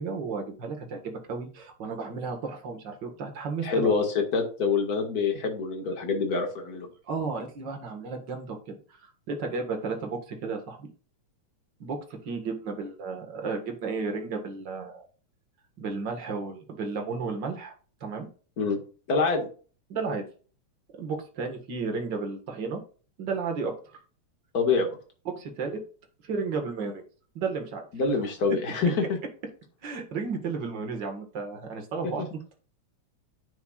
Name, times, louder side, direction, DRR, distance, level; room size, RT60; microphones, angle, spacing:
voice 1, 0.0-3.9 7.1-10.9 11.8-12.0 12.2-15.1 15.8-17.8 18.0-18.3 19.9-20.2 21.0-22.8 23.2-23.7 25.3-25.8 26.2-27.0 27.4-27.9 29.8-32.2, right 4 dB, 45° right, 3 dB, 2.0 m, -33 dB
voice 2, 3.6-4.0 4.3-6.9 18.6-18.8 19.1-19.5 24.5-24.9 27.9-29.2 32.0-32.3, left 4 dB, 35° left, 3 dB, 2.0 m, -26 dB
9.5 x 7.9 x 2.5 m, 0.38 s
omnidirectional pair, 3.3 m